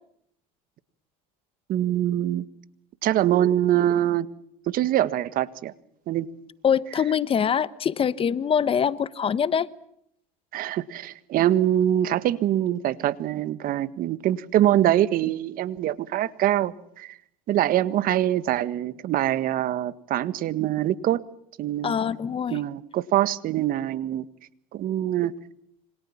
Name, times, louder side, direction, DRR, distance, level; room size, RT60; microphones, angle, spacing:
voice 1, 1.7-2.4 3.0-4.3 4.7-5.7 6.1-6.3 10.5-17.2 17.5-21.2 21.6-22.0 22.5-24.3 24.7-25.3, right 12 dB, 55° right, 15 dB, 1.6 m, -24 dB
voice 2, 6.6-9.7 21.8-22.6, left 7 dB, 30° left, 17 dB, 1.1 m, -24 dB
28.0 x 25.5 x 7.3 m, 0.72 s
supercardioid pair, 110°, 18 cm